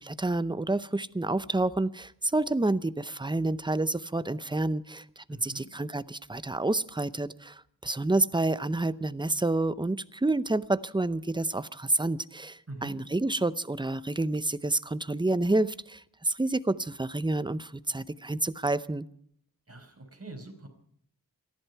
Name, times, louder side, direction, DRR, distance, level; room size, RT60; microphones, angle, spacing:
voice 1, 0.0-19.1, right 2 dB, 10° right, 15 dB, 0.6 m, -29 dB
voice 2, 5.3-5.6 12.7-12.9 19.7-20.7, right 2 dB, 40° right, 4 dB, 4.9 m, -43 dB
28.0 x 11.0 x 4.6 m, 0.65 s
wide cardioid pair, 75°, 38 cm